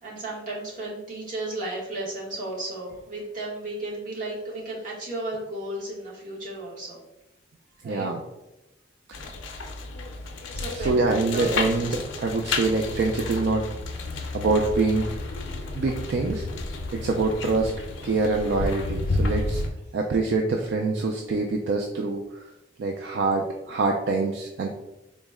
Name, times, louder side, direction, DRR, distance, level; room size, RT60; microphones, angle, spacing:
voice 1, 0.0-7.0 7.8-8.1 9.2-9.7 10.5-11.0 11.3-11.9 14.1-14.2, right 2 dB, 45° right, -5 dB, 1.1 m, -34 dB
voice 2, 7.8-8.2 10.7-13.6 14.3-15.1 15.7-16.4 16.9-17.7 18.0-19.6 19.9-22.4 22.8-24.7, right 3 dB, 65° right, 1 dB, 0.3 m, -25 dB
sound 1, 9.1-19.7, left 3 dB, 85° left, 0.5 m, -31 dB
3.9 x 2.1 x 3.5 m, 0.94 s
head